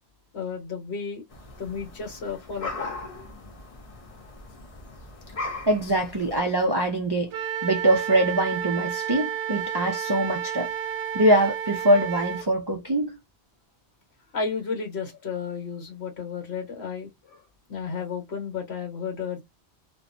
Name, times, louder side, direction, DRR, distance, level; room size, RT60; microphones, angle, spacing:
voice 1, 0.3-1.2 1.6-2.9 14.3-17.4 17.7-19.4, left 5 dB, 70° left, 1.4 m, -33 dB
sound 1, 1.3-6.4, left 3 dB, 40° left, 0.6 m, -38 dB
voice 2, 5.7-10.7 11.1-13.2, right 1 dB, 40° right, 0.3 m, -23 dB
Wind instrument woodwind instrument, 7.3-12.5, right 9 dB, 85° right, 0.9 m, -31 dB
2.7 x 2.2 x 2.5 m
omnidirectional pair, 1.1 m